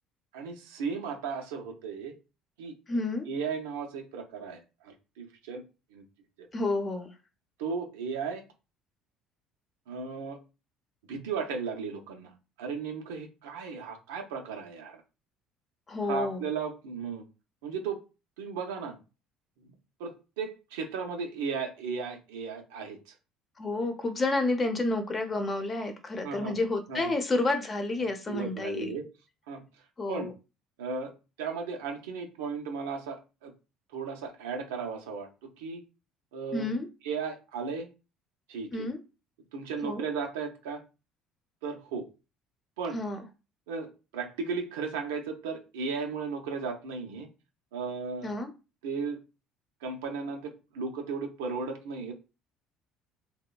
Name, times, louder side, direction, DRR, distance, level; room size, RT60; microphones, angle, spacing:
voice 1, 0.3-2.1 2.6-2.7 3.3-5.6 5.9-6.0 6.4-6.5 7.6-8.4 9.9-10.4 11.1-15.0 16.0-17.2 17.6-18.0 18.4-19.0 20.0-23.1 26.2-26.6 26.9-27.1 28.3-29.1 29.5-29.6 30.1-30.3 30.8-31.1 31.4-33.5 33.9-35.8 36.3-36.7 37.0-37.9 38.5-38.9 39.5-40.8 41.6-42.1 42.8-43.0 43.7-47.3 47.7-48.3 48.8-49.2 49.8-52.1, right 5 dB, 90° right, 3 dB, 0.5 m, -35 dB
voice 2, 2.9-3.3 6.5-7.1 15.9-16.4 23.6-28.9 30.0-30.3 36.5-36.9 38.7-39.0 39.8-40.0 42.9-43.2 48.2-48.5, left 2 dB, 30° left, 6 dB, 0.6 m, -30 dB
2.8 x 2.0 x 2.3 m, 0.30 s
supercardioid pair, 80°, 0 cm